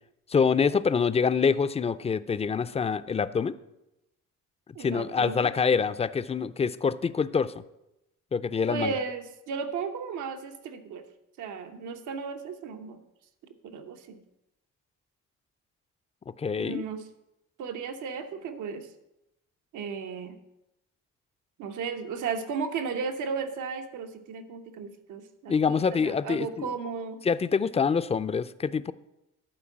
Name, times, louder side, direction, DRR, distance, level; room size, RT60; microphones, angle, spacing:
voice 1, 0.3-3.6 4.8-7.6 8.3-8.9 16.4-16.8 25.5-26.7 27.2-28.9, left 6 dB, 20° left, 14 dB, 0.4 m, -26 dB
voice 2, 4.7-5.5 8.7-11.0 11.4-13.0 13.6-14.2 16.6-17.1 17.6-18.9 19.7-20.4 21.6-27.2, right 5 dB, 80° right, 7 dB, 1.0 m, -35 dB
12.0 x 4.6 x 7.3 m, 0.90 s
cardioid pair, 90°, 30 cm